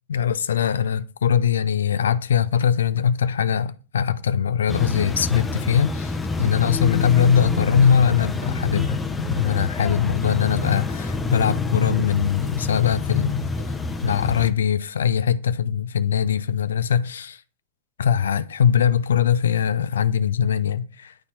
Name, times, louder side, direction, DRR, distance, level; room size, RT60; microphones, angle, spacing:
voice 1, 0.1-13.7 14.0-17.4 18.0-21.3, left 8 dB, 65° left, 0.3 m, -21 dB
sound 1, 4.7-14.5, left 3 dB, 15° left, 0.7 m, -27 dB
8.8 x 4.1 x 4.0 m
figure-of-eight pair, 90°, 0 cm